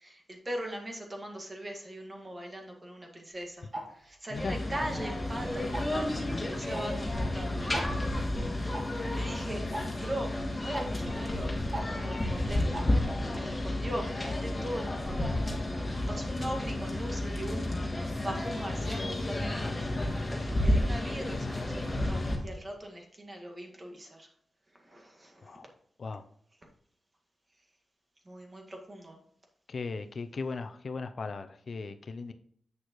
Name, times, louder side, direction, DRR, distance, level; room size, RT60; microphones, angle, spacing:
voice 1, 0.0-8.1 9.1-9.7 9.9-11.5 12.0-12.7 13.3-15.5 16.1-24.3 24.7-25.6 28.2-29.2, right 1 dB, 30° right, 2 dB, 1.8 m, -40 dB
Tick-tock, 3.7-3.8 4.7-5.0 5.7-6.0 6.7-6.8 7.1-7.2 7.7-7.9 8.7-8.8 9.7-9.8 10.7-10.8 11.7-11.8 12.7-12.8, right 1 dB, 45° right, 1.5 m, -35 dB
sound 1, 4.3-22.4, left 1 dB, 20° left, 1.8 m, -31 dB
voice 2, 29.7-32.3, left 4 dB, 60° left, 9 dB, 0.5 m, -37 dB
8.2 x 6.3 x 3.0 m, 0.63 s
wide cardioid pair, 90°, 0 cm